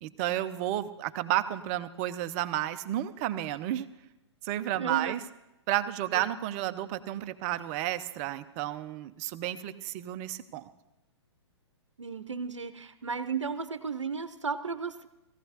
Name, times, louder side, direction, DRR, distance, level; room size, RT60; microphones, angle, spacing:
voice 1, 0.0-3.9 4.4-5.2 5.7-10.6, right 13 dB, 30° right, 11 dB, 0.6 m, -32 dB
voice 2, 4.8-5.1 6.1-6.3 12.0-15.1, right 5 dB, 85° right, 11 dB, 0.7 m, -34 dB
18.5 x 15.0 x 2.9 m, 0.95 s
figure-of-eight pair, 120°, 15 cm